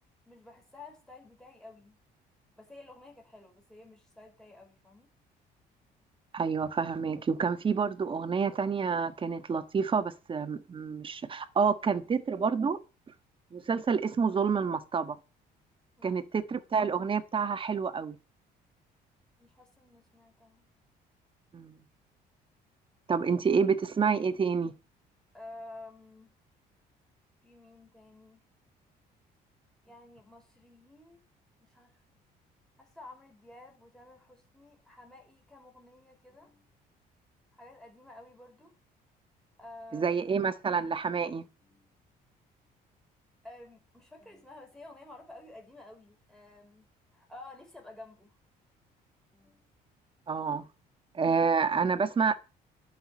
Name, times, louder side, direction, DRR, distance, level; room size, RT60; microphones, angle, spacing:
voice 1, 0.3-2.0 2.5-5.1 16.0-16.3 19.4-20.7 23.2-23.3 25.3-26.3 27.4-28.4 29.8-31.3 31.6-32.2 32.8-36.7 37.5-38.7 39.6-40.4 41.6-41.9 43.4-48.3 49.3-49.7, left 2 dB, 5° left, 5.2 m, -51 dB
voice 2, 6.3-12.8 13.5-15.2 16.0-18.2 21.5-21.8 23.1-24.7 39.9-41.4 50.3-50.6 51.1-52.4, right 5 dB, 30° right, 1.4 m, -28 dB
11.5 x 6.0 x 8.6 m
cardioid pair, 110°, 17 cm